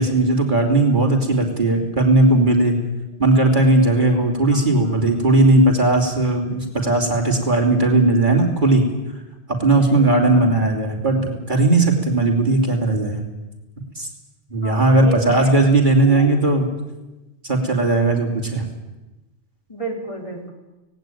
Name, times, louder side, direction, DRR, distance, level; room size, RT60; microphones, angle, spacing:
voice 1, 0.0-2.7 3.2-8.8 9.5-13.2 13.9-14.1 14.5-16.7 17.4-18.6, right 2 dB, 40° right, 1 dB, 2.9 m, -17 dB
voice 2, 9.8-10.5 14.6-15.5 16.0-16.3 19.7-20.5, right 1 dB, 25° left, 0 dB, 3.7 m, -32 dB
18.0 x 17.0 x 9.1 m, 1.0 s
omnidirectional pair, 1.3 m